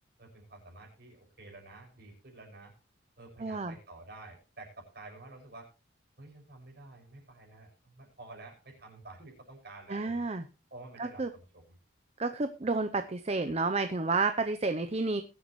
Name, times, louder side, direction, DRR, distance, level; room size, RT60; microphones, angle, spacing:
voice 1, 0.2-2.7 3.2-5.7 6.2-10.3 10.7-11.8, right 2 dB, 50° right, 1 dB, 6.2 m, -50 dB
voice 2, 3.4-3.8 9.9-10.4 11.0-11.3 12.2-15.2, right 3 dB, 30° right, 8 dB, 0.6 m, -30 dB
21.5 x 8.2 x 3.1 m, 0.31 s
head